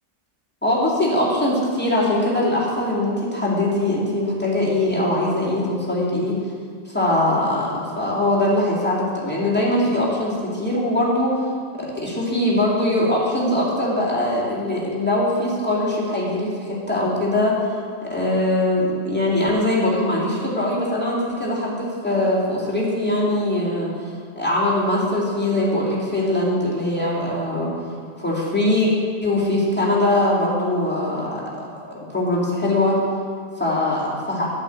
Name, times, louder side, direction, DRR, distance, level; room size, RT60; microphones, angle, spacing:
voice 1, 0.6-6.4 6.9-11.4 11.8-17.8 18.0-24.1 24.4-27.7 28.2-28.9 29.2-33.0 33.6-34.5, left 1 dB, 5° left, -6 dB, 2.6 m, -22 dB
11.5 x 5.7 x 8.4 m, 2.1 s
omnidirectional pair, 1.7 m